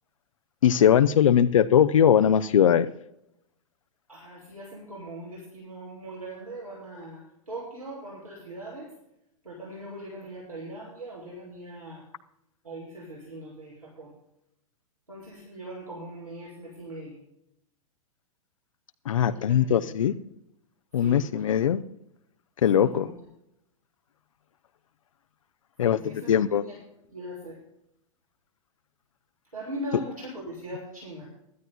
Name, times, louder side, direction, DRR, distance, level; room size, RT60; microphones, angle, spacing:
voice 1, 0.6-2.9 19.1-20.1 20.9-21.8 22.6-23.1 25.8-26.6, left 9 dB, 65° left, 9 dB, 0.5 m, -20 dB
voice 2, 4.1-8.9 9.4-12.0 12.6-14.1 15.1-17.2 19.2-20.2 20.9-21.5 22.7-23.1 25.8-26.8 27.1-27.6 29.5-31.3, right 1 dB, 85° right, -5 dB, 6.5 m, -40 dB
23.5 x 13.5 x 2.2 m, 0.80 s
figure-of-eight pair, 105°, 18 cm